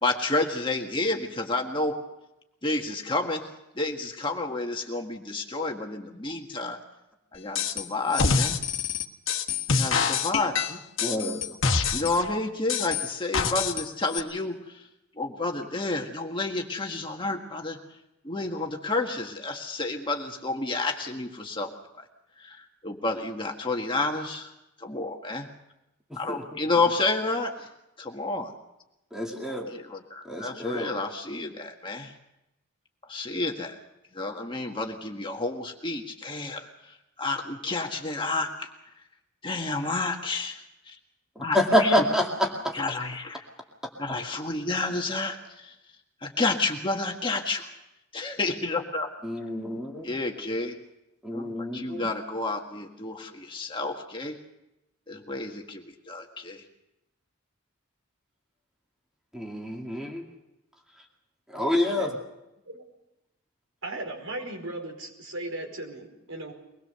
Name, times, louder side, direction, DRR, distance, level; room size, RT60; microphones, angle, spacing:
voice 1, 0.0-2.0 2.6-3.5 3.7-6.8 7.3-8.6 9.7-10.8 11.9-14.8 15.2-17.8 18.2-22.0 22.4-24.5 24.8-25.5 26.1-27.7 28.0-28.5 29.7-32.1 33.1-33.8 34.1-38.7 39.4-41.0 41.4-42.0 42.7-43.4 44.0-45.7 46.2-47.7 48.1-49.1 50.0-50.8 51.3-51.5 51.7-54.4 55.1-56.6, left 3 dB, 20° left, 2 dB, 1.7 m, -30 dB
sound 1, 7.6-7.9 8.1-12.3 12.7-13.9 14.1-14.2, left 5 dB, 60° left, 1.6 m, -26 dB
voice 2, 11.0-11.4 29.1-29.7 30.3-30.9 41.4-42.7 49.2-50.1 51.2-52.1 59.3-60.2 61.5-62.1, left 1 dB, 5° right, 0 dB, 2.3 m, -27 dB
voice 3, 63.8-66.5, right 2 dB, 65° right, 2 dB, 4.9 m, -37 dB
23.5 x 20.5 x 6.8 m, 0.91 s
head